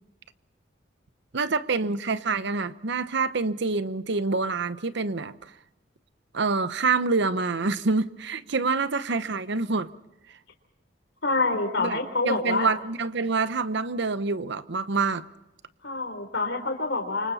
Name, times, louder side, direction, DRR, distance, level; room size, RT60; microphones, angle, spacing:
voice 1, 1.3-5.3 6.3-9.9 11.8-15.2, right 4 dB, 65° right, 0.9 m, -26 dB
voice 2, 11.2-12.7 15.8-17.3, left 3 dB, 70° left, 3.6 m, -26 dB
28.5 x 25.0 x 4.2 m
head